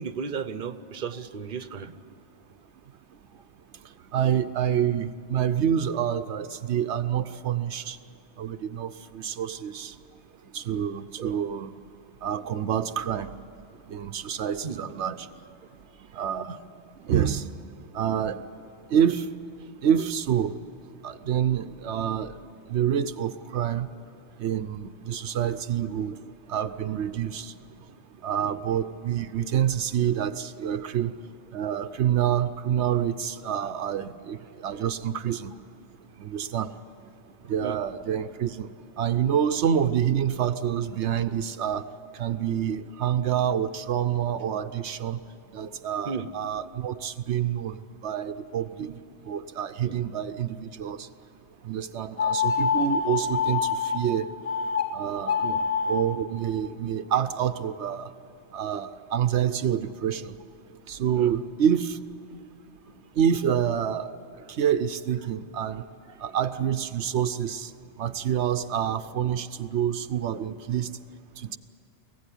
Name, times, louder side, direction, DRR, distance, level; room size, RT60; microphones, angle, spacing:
voice 1, 0.0-1.9 11.2-11.3 14.6-14.8 28.4-28.5 30.8-30.9 33.6-34.0 37.6-37.8 46.0-46.3 48.8-48.9 49.8-50.0 51.9-52.0 55.4-55.6 61.1-61.3 66.1-66.2, right 6 dB, 50° right, 12 dB, 1.0 m, -35 dB
voice 2, 4.1-8.0 8.4-9.9 10.5-11.7 12.2-13.3 13.9-15.3 16.1-16.6 17.1-17.4 17.9-18.4 18.9-19.2 19.8-20.5 21.0-22.3 22.7-23.9 24.4-26.2 26.5-27.5 28.2-31.1 31.5-34.4 34.6-35.5 36.2-36.7 37.5-38.7 39.0-41.8 42.2-45.2 45.5-47.7 48.0-48.9 49.3-51.1 51.6-54.2 54.9-55.4 55.9-58.1 58.5-60.3 60.9-62.0 63.2-64.1 64.6-65.8 66.2-67.7 68.0-70.9, right 9 dB, 80° right, 9 dB, 1.0 m, -27 dB
sound 1, 52.2-54.0 54.4-54.8 55.2-56.0, left 5 dB, 60° left, 2.8 m, -25 dB
24.5 x 16.5 x 9.9 m, 2.7 s
omnidirectional pair, 1.1 m